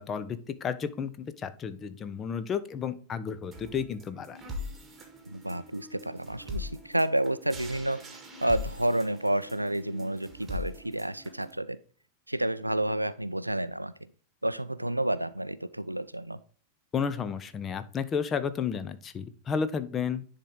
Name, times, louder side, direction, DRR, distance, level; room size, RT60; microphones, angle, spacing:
voice 1, 0.0-4.4 16.9-20.3, left 6 dB, 25° left, 12 dB, 0.6 m, -32 dB
sound 1, 3.5-11.5, left 2 dB, 15° right, 1.7 m, -42 dB
voice 2, 5.3-8.0 8.4-11.8 12.3-13.9 14.4-16.4, right 1 dB, 85° right, 15 dB, 0.3 m, -30 dB
10.0 x 3.7 x 3.7 m, 0.43 s
figure-of-eight pair, 90°, 0 cm